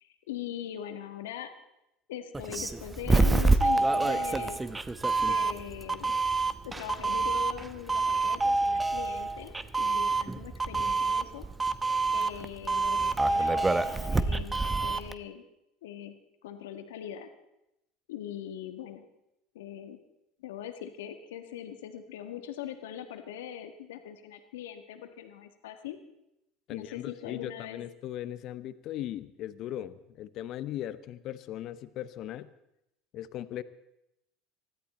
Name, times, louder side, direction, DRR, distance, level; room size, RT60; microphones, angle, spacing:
voice 1, 0.0-1.5 2.1-4.6 5.2-6.1 6.6-11.4 12.1-15.4 15.8-17.3 18.1-19.0 19.5-20.0 20.4-26.0 26.7-27.8, left 10 dB, 80° left, 7 dB, 1.4 m, -41 dB
Doorbell, 2.3-15.1, right 3 dB, 15° right, 0.9 m, -27 dB
voice 2, 26.7-32.5 33.1-33.6, left 12 dB, 55° left, 14 dB, 0.8 m, -38 dB
20.0 x 14.0 x 4.3 m, 0.85 s
hypercardioid pair, 80°, 0 cm